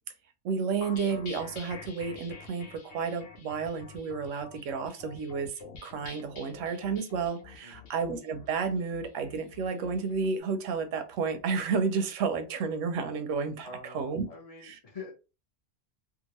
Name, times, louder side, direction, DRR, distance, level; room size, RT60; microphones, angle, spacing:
voice 1, 0.4-2.6 2.9-5.5 5.8-14.3 14.6-14.8, right 5 dB, 90° right, 0.9 m, -31 dB
sound 1, 0.8-10.3, left 5 dB, 65° left, 1.0 m, -48 dB
voice 2, 7.6-7.9 13.6-15.1, left 4 dB, 35° left, 0.7 m, -45 dB
2.8 x 2.3 x 2.9 m
omnidirectional pair, 1.2 m